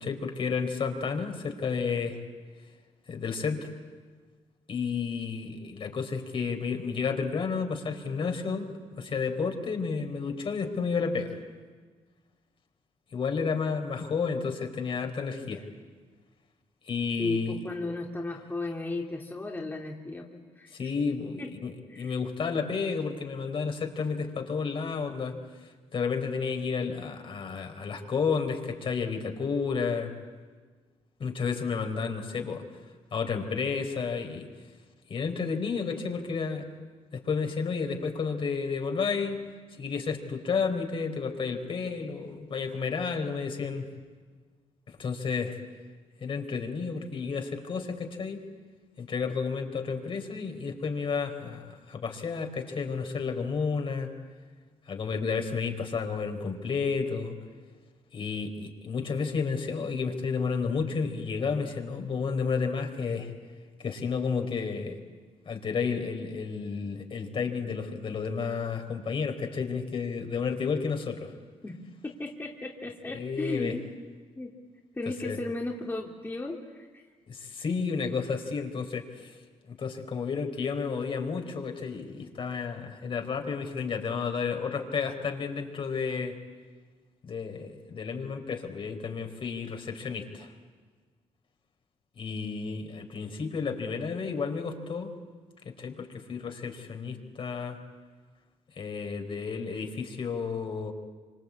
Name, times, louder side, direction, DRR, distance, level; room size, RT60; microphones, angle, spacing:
voice 1, 0.0-2.2 3.1-3.7 4.7-11.4 13.1-15.7 16.8-17.6 20.7-25.4 25.9-30.1 31.2-32.6 33.1-34.5 35.1-36.7 37.1-39.4 39.8-43.9 45.0-45.6 46.2-48.4 49.0-54.1 54.9-57.3 58.1-63.3 63.8-65.0 65.5-71.3 73.1-73.7 75.2-75.4 77.3-79.4 79.7-86.4 87.3-90.5 92.1-95.1 95.6-97.8 98.8-100.9, left 5 dB, 50° left, 4 dB, 4.4 m, -31 dB
voice 2, 17.2-20.9 21.4-21.5 21.9-22.1 71.6-71.8 72.0-73.8 74.4-74.5 74.9-77.0, left 2 dB, 20° left, -1 dB, 2.9 m, -35 dB
26.0 x 26.0 x 8.6 m, 1.5 s
cardioid pair, 90°, 11 cm